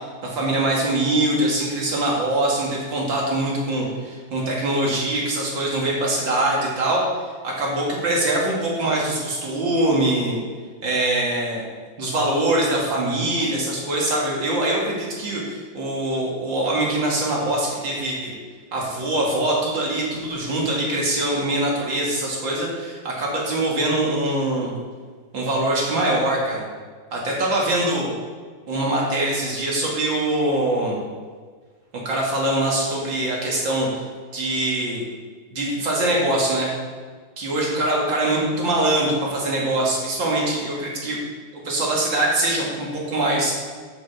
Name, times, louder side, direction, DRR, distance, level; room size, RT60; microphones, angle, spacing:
voice 1, 0.2-7.0 7.4-10.4 10.8-11.6 12.0-18.3 18.7-24.7 25.3-26.7 27.1-28.1 28.7-31.0 32.0-34.0 34.3-35.1 35.5-36.7 37.4-41.2 41.5-43.5, right 1 dB, 70° right, -3 dB, 2.8 m, -23 dB
11.5 x 5.7 x 4.9 m, 1.5 s
omnidirectional pair, 2.1 m